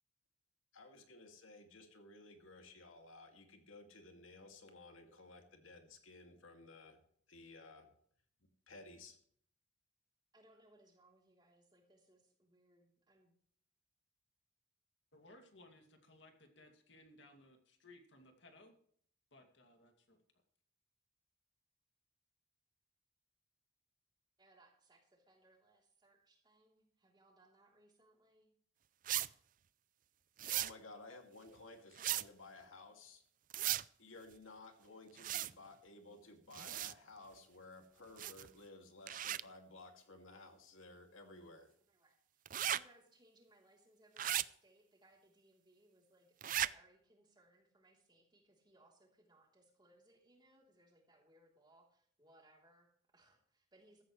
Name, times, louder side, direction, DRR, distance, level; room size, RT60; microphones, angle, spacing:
voice 1, 0.7-7.0 7.3-7.9 8.7-9.2 30.5-33.2 34.0-41.7, left 2 dB, 90° left, 2.4 m, -56 dB
voice 2, 10.3-13.4 24.4-28.5 41.9-42.2 42.7-54.0, right 1 dB, 20° right, 3.4 m, -68 dB
voice 3, 15.1-18.7 19.3-20.2, left 2 dB, 60° left, 2.5 m, -61 dB
sound 1, 29.0-29.3 30.4-30.7 32.0-32.2 33.5-33.8 35.2-35.5 36.5-36.9 38.2-38.5 39.1-39.4 42.4-42.8 44.2-44.4 46.4-46.7, right 12 dB, 40° right, 0.4 m, -36 dB
16.0 x 13.5 x 3.2 m
head